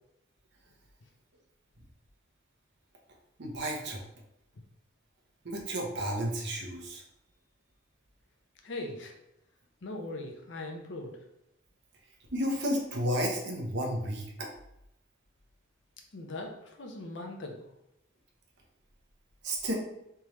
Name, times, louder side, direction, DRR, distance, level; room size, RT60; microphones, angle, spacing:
voice 1, 3.4-4.0 5.4-7.0 12.3-14.5 19.4-19.7, equal, 65° right, 0 dB, 0.8 m, -32 dB
voice 2, 8.6-9.1 9.8-11.2 16.1-17.7, left 2 dB, 65° left, 2 dB, 0.7 m, -40 dB
3.5 x 3.1 x 3.0 m, 0.83 s
head